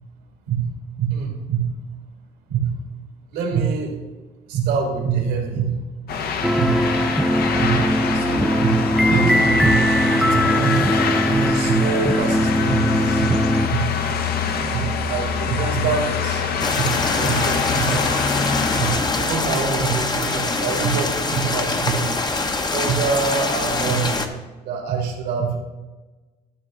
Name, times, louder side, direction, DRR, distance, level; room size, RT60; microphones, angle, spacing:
voice 1, 0.5-1.8 2.5-2.8 3.3-4.0 4.5-5.8 6.6-6.9 7.6-14.1 14.7-16.4 16.7-18.4 18.8-24.3 24.6-25.6, right 6 dB, 85° right, 1 dB, 2.3 m, -25 dB
sound 1, 6.1-19.0, left 6 dB, 65° left, 1.0 m, -25 dB
sound 2, 6.4-13.7, equal, ahead, 0.3 m, -20 dB
sound 3, 16.6-24.3, left 3 dB, 25° left, 0.9 m, -23 dB
13.0 x 6.0 x 3.8 m, 1.2 s
cardioid pair, 110°, 17 cm